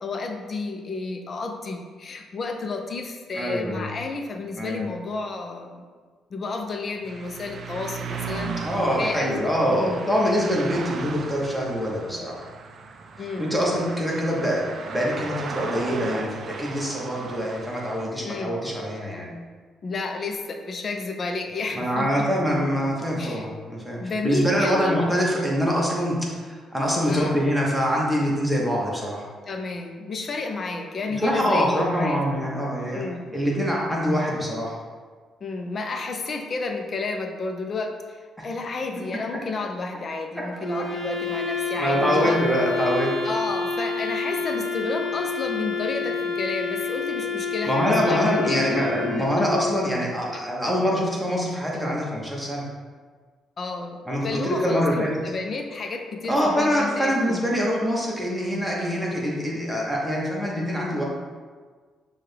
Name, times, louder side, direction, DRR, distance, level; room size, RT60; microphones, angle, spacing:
voice 1, 0.0-5.8 6.3-10.0 13.2-13.5 18.2-18.6 19.8-22.3 23.2-23.4 24.0-25.0 27.1-27.4 29.5-32.2 32.9-33.3 35.4-42.4 43.2-48.9 49.2-49.5 50.3-50.7 53.6-57.4, left 3 dB, 45° left, 4 dB, 0.5 m, -31 dB
voice 2, 3.3-3.9 4.6-4.8 8.6-12.4 13.4-19.3 21.7-29.3 31.2-33.0 33.3-34.8 39.1-39.2 41.8-43.1 47.6-52.7 54.1-55.1 56.3-61.0, equal, ahead, -4 dB, 1.1 m, -24 dB
sound 1, 7.0-18.1, right 5 dB, 55° right, 0.3 m, -36 dB
Wind instrument woodwind instrument, 40.6-49.9, left 4 dB, 15° left, 1.3 m, -29 dB
6.1 x 2.3 x 3.4 m, 1.5 s
cardioid pair, 90°, 0 cm